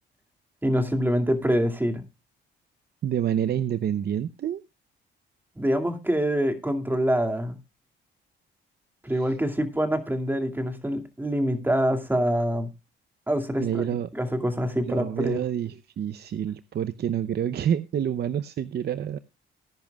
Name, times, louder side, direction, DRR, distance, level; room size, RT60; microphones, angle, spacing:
voice 1, 0.6-2.0 5.6-7.6 9.0-12.7 13.3-13.9 14.1-15.4, equal, 10° right, 2.4 m, -25 dB
voice 2, 3.0-4.6 9.2-9.3 13.6-14.1 14.8-19.2, right 9 dB, 55° right, 0.7 m, -28 dB
19.5 x 10.5 x 2.3 m
cardioid pair, 90°, 20 cm